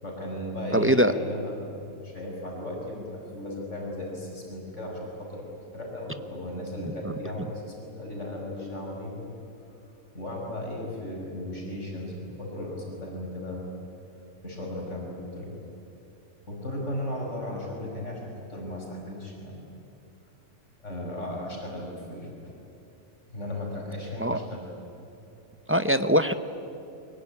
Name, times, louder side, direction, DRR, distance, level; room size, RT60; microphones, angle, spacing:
voice 1, 0.0-5.4 5.7-9.3 10.1-13.7 14.4-15.6 16.5-19.7 20.8-22.5 23.3-24.7, left 1 dB, 85° left, -1 dB, 5.6 m, -36 dB
voice 2, 0.7-1.1 7.0-7.1 24.2-24.4 25.7-26.3, equal, 10° right, 10 dB, 0.8 m, -22 dB
24.5 x 22.0 x 9.9 m, 2.9 s
omnidirectional pair, 1.2 m